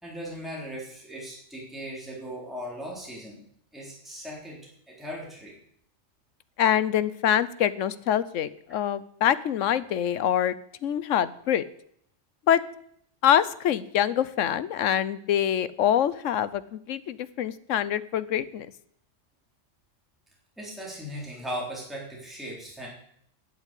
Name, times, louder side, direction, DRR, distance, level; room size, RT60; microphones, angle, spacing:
voice 1, 0.0-3.4 3.7-4.6 4.9-5.5 20.6-22.9, equal, ahead, -4 dB, 3.9 m, -38 dB
voice 2, 6.6-10.5 10.8-11.6 12.5-12.6 13.2-18.7, left 10 dB, 80° left, 16 dB, 1.1 m, -25 dB
12.0 x 8.1 x 8.3 m, 0.68 s
omnidirectional pair, 1.3 m